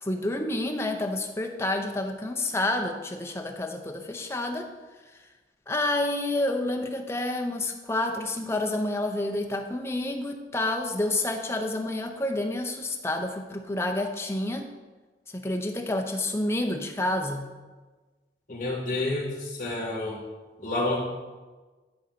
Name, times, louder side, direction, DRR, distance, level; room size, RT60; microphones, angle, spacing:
voice 1, 0.0-4.7 5.7-14.7 15.3-17.5, left 1 dB, 15° left, 3 dB, 0.7 m, -29 dB
voice 2, 18.5-20.2 20.6-21.0, left 2 dB, 45° left, -8 dB, 2.2 m, -29 dB
11.5 x 4.0 x 5.9 m, 1.3 s
head